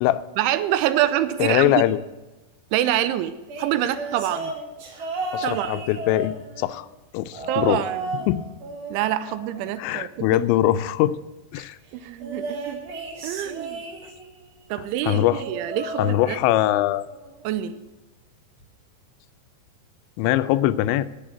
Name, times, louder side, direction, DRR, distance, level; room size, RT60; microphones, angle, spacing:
voice 1, 0.4-1.8 2.7-4.5 5.4-5.8 7.5-8.2 8.9-10.3 11.6-11.7 12.0-12.8 13.2-13.8 14.7-16.4 17.4-17.7, right 12 dB, 85° right, 13 dB, 3.0 m, -26 dB
voice 2, 1.4-2.0 5.3-6.9 7.1-7.8 8.3-8.4 9.8-11.2 11.5-11.8 15.1-15.4 16.0-17.1 20.2-21.1, left 14 dB, 85° left, 13 dB, 2.7 m, -22 dB
sound 1, 3.5-6.8 7.3-8.3 8.6-10.2 12.2-14.4 15.3-16.8 17.1-17.5 18.6-18.7, right 2 dB, 55° right, 3.9 m, -34 dB
11.0 x 7.9 x 9.1 m, 1.1 s
omnidirectional pair, 5.5 m